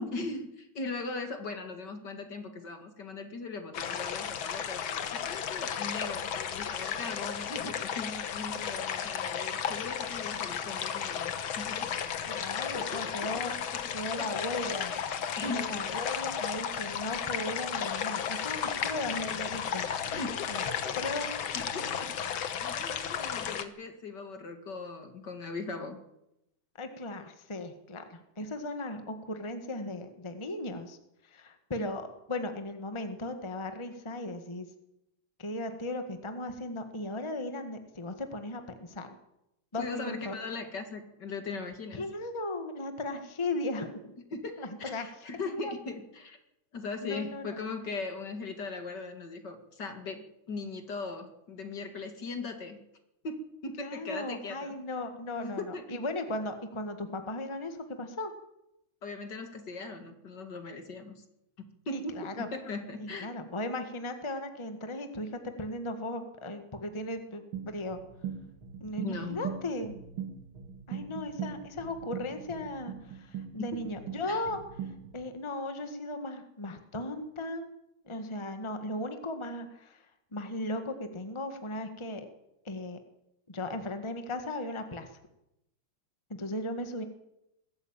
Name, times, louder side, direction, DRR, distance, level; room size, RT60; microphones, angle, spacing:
voice 1, 0.0-11.9 12.3-13.6 14.2-14.3 15.4-16.1 20.1-21.1 21.5-26.0 39.8-42.0 44.3-46.4 46.7-52.8 53.2-54.7 55.4-55.9 59.0-61.2 61.6-63.3 69.0-69.4 73.6-73.8 74.3-74.5, left 3 dB, 55° left, 6 dB, 2.8 m, -39 dB
sound 1, 3.7-23.6, left 8 dB, 75° left, 2.1 m, -34 dB
voice 2, 12.2-13.5 13.9-14.9 15.4-19.9 20.5-20.6 21.0-21.5 26.8-31.0 31.2-34.7 35.4-39.1 39.7-40.4 41.9-44.1 44.6-45.1 45.5-45.7 47.0-47.6 53.8-58.3 61.9-62.5 63.0-68.0 68.8-69.9 70.9-77.7 78.0-80.0 80.3-82.3 82.6-83.0 83.5-85.1 86.3-87.0, left 2 dB, 15° left, 7 dB, 1.5 m, -37 dB
sound 2, 67.5-75.2, right 8 dB, 75° right, 2.9 m, -41 dB
21.5 x 13.5 x 8.9 m, 0.86 s
omnidirectional pair, 2.3 m